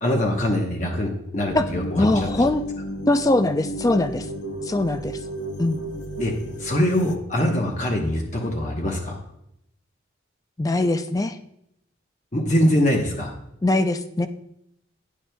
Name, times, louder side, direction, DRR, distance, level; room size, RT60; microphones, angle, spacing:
voice 1, 0.0-2.5 6.2-6.3 6.6-9.2 12.3-13.3, left 1 dB, 35° left, 1 dB, 1.0 m, -23 dB
sound 1, 1.5-7.2, equal, 60° left, 0.7 m, -33 dB
voice 2, 2.0-2.6 3.1-4.3 4.6-5.2 5.6-5.8 10.6-11.4 13.6-14.3, left 2 dB, 15° left, 10 dB, 0.3 m, -21 dB
11.5 x 9.3 x 2.3 m, 0.77 s
head